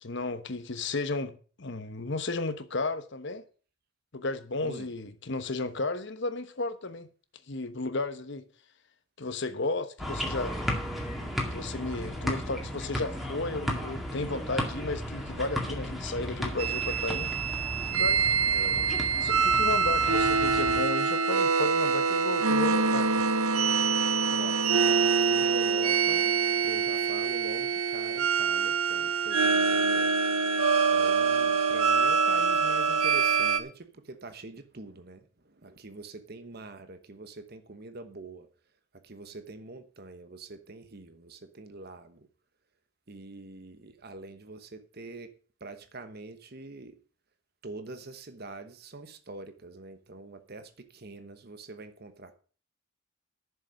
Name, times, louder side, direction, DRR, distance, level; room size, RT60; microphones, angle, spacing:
voice 1, 0.0-3.4 4.1-7.1 7.5-8.4 9.2-10.6 11.5-17.3 17.9-18.3 19.2-23.3, left 3 dB, 55° left, 1.1 m, -33 dB
sound 1, 10.0-20.8, equal, ahead, 2.0 m, -35 dB
sound 2, 16.6-33.6, right 5 dB, 80° right, 0.9 m, -25 dB
voice 2, 18.4-18.9 24.3-30.2 30.8-38.5 38.9-42.3 43.1-45.3 45.6-47.0 47.6-52.3, right 2 dB, 45° right, 1.1 m, -44 dB
11.0 x 6.9 x 6.3 m
head